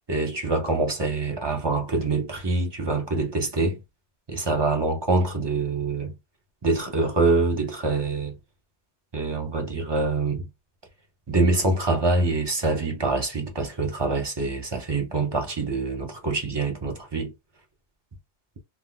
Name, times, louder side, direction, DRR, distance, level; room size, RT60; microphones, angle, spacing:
voice 1, 0.1-3.8 4.3-6.1 6.6-8.4 9.1-10.5 11.3-17.3, right 3 dB, 30° right, 0.6 m, -25 dB
3.7 x 2.2 x 2.2 m
omnidirectional pair, 1.1 m